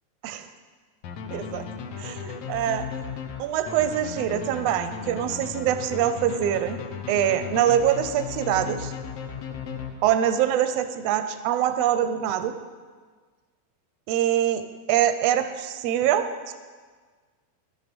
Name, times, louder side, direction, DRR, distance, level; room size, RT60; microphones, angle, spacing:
sound 1, 1.0-10.4, left 6 dB, 65° left, 1.7 m, -36 dB
voice 1, 1.3-1.6 2.0-2.9 3.4-6.8 7.1-8.9 10.0-12.5 14.1-14.6 14.9-16.5, right 10 dB, 75° right, 10 dB, 1.6 m, -24 dB
12.5 x 8.0 x 5.2 m, 1.5 s
omnidirectional pair, 3.4 m